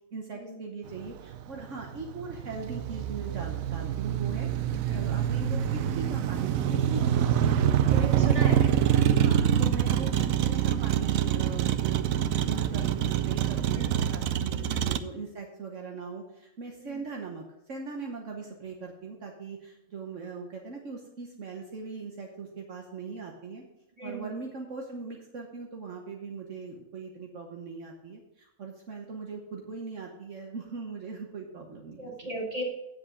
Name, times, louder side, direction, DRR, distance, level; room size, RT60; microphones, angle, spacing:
voice 1, 0.1-4.5 4.9-7.6 9.2-23.6 24.0-32.4, right 4 dB, 65° right, 1 dB, 1.4 m, -40 dB
Motor vehicle (road), 0.9-15.0, right 9 dB, 90° right, 1.1 m, -26 dB
voice 2, 4.8-5.2 7.9-8.8 13.6-13.8 14.5-14.8 16.8-17.0 24.0-24.3 32.0-32.6, right 1 dB, 25° right, -1 dB, 2.4 m, -37 dB
9.4 x 7.8 x 5.0 m, 0.87 s
omnidirectional pair, 1.4 m